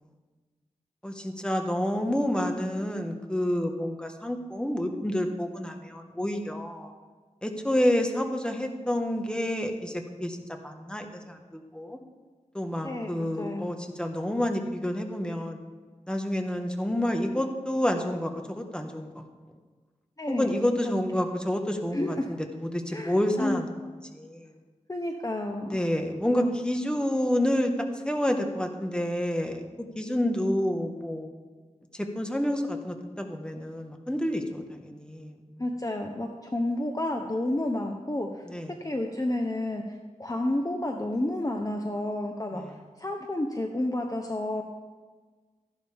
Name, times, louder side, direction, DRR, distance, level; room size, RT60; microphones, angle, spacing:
voice 1, 1.0-6.9 7.4-12.0 12.5-15.6 16.1-19.2 20.3-23.7 24.1-24.5 25.6-31.3 31.9-35.6 38.4-38.7 42.5-42.7, left 1 dB, 5° left, 4 dB, 1.5 m, -29 dB
voice 2, 12.8-13.7 20.2-20.5 21.1-21.2 21.9-22.3 22.9-23.6 24.9-25.8 26.3-26.6 35.6-38.5 38.8-39.8 40.2-44.6, left 1 dB, 25° left, 3 dB, 1.0 m, -30 dB
14.5 x 11.5 x 3.6 m, 1.4 s
wide cardioid pair, 50°, 13 cm